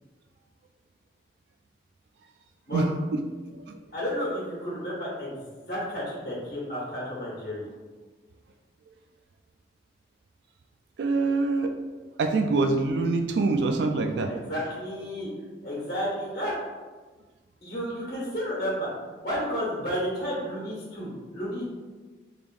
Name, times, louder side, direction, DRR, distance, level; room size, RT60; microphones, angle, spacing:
voice 1, 3.9-7.7 14.2-15.3 15.6-16.5 17.6-18.9 19.2-21.7, equal, 55° left, -7 dB, 1.1 m, -32 dB
voice 2, 11.0-11.8 12.2-14.3, right 3 dB, 75° right, 6 dB, 0.3 m, -24 dB
3.6 x 3.3 x 2.5 m, 1.3 s
head